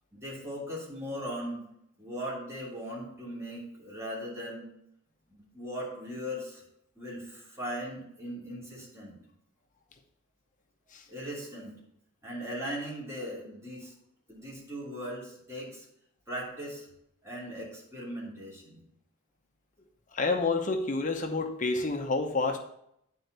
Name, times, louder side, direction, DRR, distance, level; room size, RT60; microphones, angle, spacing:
voice 1, 0.1-1.6 2.0-4.7 5.3-6.6 6.9-9.2 11.1-11.7 12.2-13.9 14.3-15.8 16.3-16.9 17.2-18.8, equal, 15° right, -7 dB, 3.1 m, -39 dB
voice 2, 20.1-22.6, left 3 dB, 35° left, 4 dB, 0.7 m, -29 dB
9.7 x 4.4 x 6.6 m, 0.75 s
head